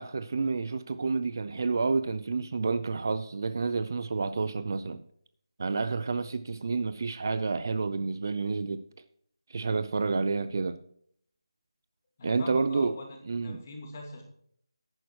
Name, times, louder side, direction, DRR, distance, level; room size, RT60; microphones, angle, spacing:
voice 1, 0.0-5.0 5.6-8.8 9.5-10.8 12.2-13.0 13.3-13.6, right 4 dB, 40° right, 13 dB, 0.6 m, -29 dB
voice 2, 12.2-13.1 13.4-14.2, left 2 dB, 25° left, 2 dB, 2.4 m, -42 dB
11.0 x 9.2 x 4.7 m, 0.65 s
figure-of-eight pair, 170°, 3 cm